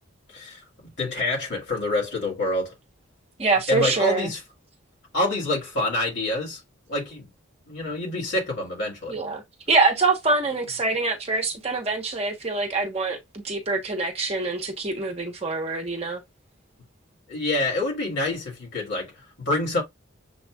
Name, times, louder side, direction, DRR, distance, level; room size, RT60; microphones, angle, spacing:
voice 1, 1.0-2.7 3.7-4.4 5.1-6.6 6.9-7.3 7.7-9.2 17.3-19.1 19.4-19.8, left 2 dB, 60° left, 2.2 m, -26 dB
voice 2, 3.4-4.3 9.1-9.4 9.7-16.2, right 3 dB, 30° right, 0.9 m, -25 dB
7.0 x 2.4 x 2.3 m
head